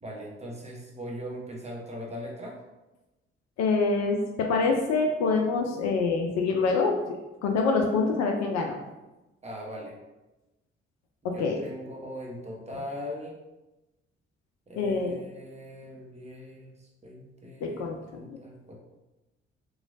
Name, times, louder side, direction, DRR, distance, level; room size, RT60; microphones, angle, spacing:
voice 1, 0.0-2.6 9.4-10.0 11.3-13.4 14.7-16.7 17.0-17.9 18.1-18.7, equal, 20° right, -2 dB, 0.9 m, -40 dB
voice 2, 3.6-4.2 4.5-6.9 7.4-8.8 11.4-11.6 14.8-15.1 17.6-18.0 18.3-18.4, left 4 dB, 55° left, 2 dB, 0.4 m, -25 dB
3.0 x 2.3 x 2.6 m, 1.0 s
hypercardioid pair, 40°, 32 cm